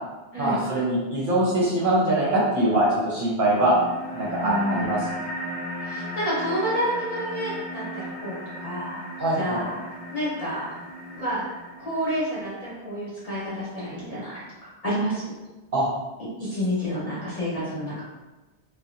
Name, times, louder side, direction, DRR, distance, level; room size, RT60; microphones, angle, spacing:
voice 1, 0.4-3.7 4.1-5.0 9.2-9.6 15.7-15.9, right 1 dB, 55° right, -7 dB, 0.8 m, -23 dB
sound 1, 3.5-12.6, equal, 60° left, 0.3 m, -36 dB
voice 2, 4.4-4.9 5.8-9.0 9.4-9.8 10.1-10.6 11.1-11.4 11.8-15.3 16.5-18.0, equal, 35° left, -9 dB, 1.0 m, -29 dB
2.8 x 2.2 x 2.5 m, 1.2 s
omnidirectional pair, 1.1 m